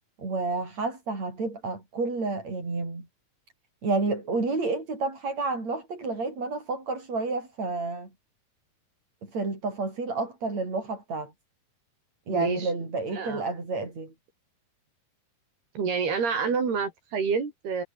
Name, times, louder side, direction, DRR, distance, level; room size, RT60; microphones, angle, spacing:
voice 1, 0.2-3.1 3.8-8.1 9.2-11.3 12.3-14.1, right 3 dB, 45° right, 8.7 m, -30 dB
voice 2, 12.3-12.7 13.1-13.5 15.8-17.8, right 5 dB, 80° right, 7.3 m, -28 dB
omnidirectional pair, 4.5 m